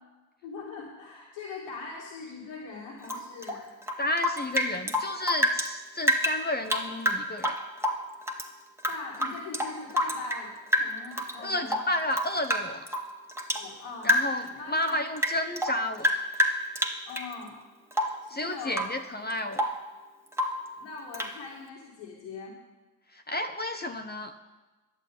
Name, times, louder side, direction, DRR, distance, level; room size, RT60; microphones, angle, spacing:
voice 1, 0.4-3.7 8.9-11.8 13.5-14.1 14.5-15.0 17.1-17.6 18.2-18.9 20.8-22.6, left 4 dB, 85° left, -4 dB, 2.4 m, -41 dB
Rain / Drip, 3.0-5.7 6.0-8.5 8.8-10.5 10.7-11.4 11.7-13.7 14.0-14.5 14.8-17.3 17.9-18.3 18.7-19.0 19.3-19.9 20.3-20.7 21.1-21.4, equal, 5° right, 1.6 m, -28 dB
voice 2, 4.0-7.5 11.4-12.8 14.0-16.1 18.3-19.7 23.1-24.3, left 1 dB, 20° left, 6 dB, 1.0 m, -31 dB
11.0 x 7.8 x 9.2 m, 1.2 s
supercardioid pair, 60°, 45 cm